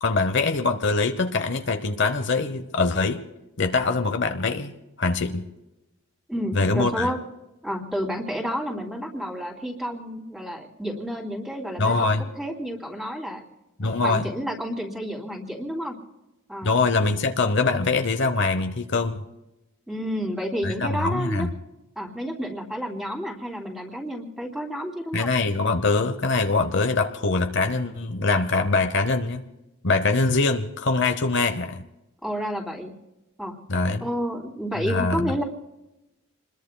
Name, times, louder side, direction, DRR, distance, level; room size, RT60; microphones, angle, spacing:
voice 1, 0.0-3.2 3.6-4.7 5.0-5.5 6.5-7.1 11.8-12.2 13.8-14.2 16.6-19.2 20.6-21.5 25.1-29.5 29.8-31.8 33.7-34.0 34.9-35.4, left 3 dB, 55° left, 7 dB, 0.9 m, -23 dB
voice 2, 6.3-7.2 7.6-13.4 13.8-16.0 16.5-16.8 19.9-21.5 22.0-25.3 32.2-32.9 33.4-33.6 34.0-35.4, equal, ahead, 0 dB, 2.7 m, -30 dB
28.0 x 21.5 x 2.2 m, 0.94 s
head